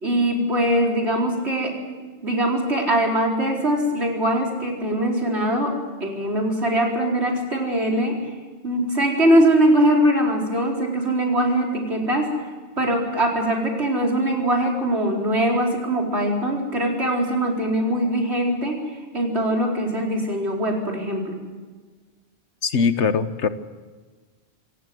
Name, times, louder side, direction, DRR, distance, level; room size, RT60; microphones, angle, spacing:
voice 1, 0.0-5.7 6.0-8.2 8.6-12.3 12.8-18.8 19.1-21.4, right 1 dB, 70° right, 0 dB, 4.7 m, -22 dB
voice 2, 22.6-23.5, left 5 dB, 80° left, 12 dB, 1.4 m, -21 dB
26.5 x 17.0 x 7.8 m, 1.4 s
omnidirectional pair, 1.2 m